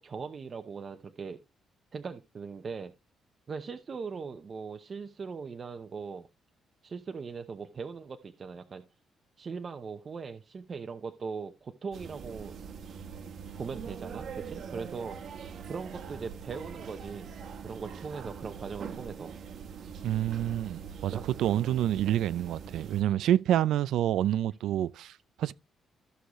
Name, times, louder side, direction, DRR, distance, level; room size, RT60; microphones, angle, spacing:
voice 1, 0.0-1.4 1.9-2.9 3.5-6.3 6.8-8.8 9.4-12.6 13.6-17.3 17.6-19.3 21.1-21.6, right 5 dB, 30° right, 0.7 m, -40 dB
sound 1, 11.9-23.0, right 6 dB, 50° right, 1.2 m, -43 dB
voice 2, 20.0-21.1 21.4-25.5, right 12 dB, 85° right, 0.4 m, -28 dB
14.0 x 6.5 x 3.1 m
cardioid pair, 170°, 0 cm